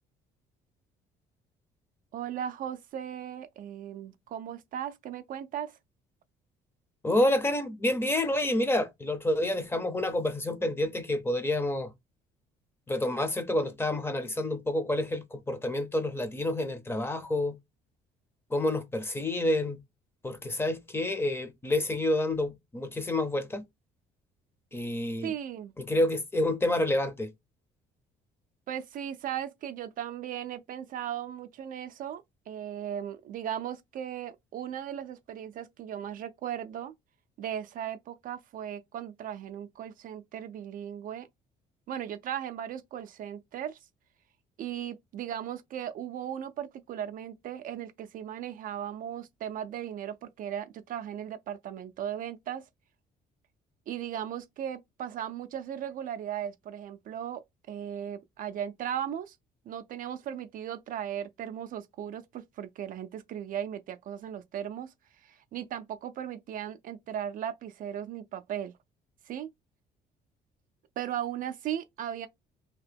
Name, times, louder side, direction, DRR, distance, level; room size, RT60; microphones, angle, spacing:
voice 1, 2.1-5.8 25.2-25.7 28.7-36.9 37.4-41.3 41.9-43.8 44.6-52.6 53.9-59.4 59.7-68.7 69.3-69.5 71.0-72.3, right 10 dB, 55° right, 0.4 m, -37 dB
voice 2, 7.0-11.9 12.9-17.6 18.5-19.8 20.2-23.6 24.7-25.3 25.8-27.3, left 1 dB, 15° left, 0.6 m, -28 dB
2.9 x 2.8 x 3.3 m
cardioid pair, 110°, 17 cm